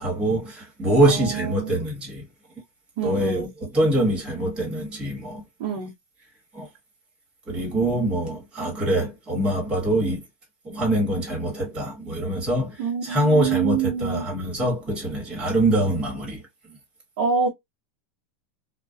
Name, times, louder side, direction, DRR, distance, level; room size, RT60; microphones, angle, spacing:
voice 1, 0.0-2.2 3.0-5.4 6.5-6.7 7.5-10.2 10.6-12.8 13.0-16.4, right 1 dB, 15° right, 1.2 m, -24 dB
voice 2, 1.0-1.9 3.0-3.5 5.6-5.9 12.8-14.3 17.2-17.5, right 6 dB, 50° right, 0.7 m, -26 dB
2.4 x 2.1 x 2.4 m
supercardioid pair, 165°, 6 cm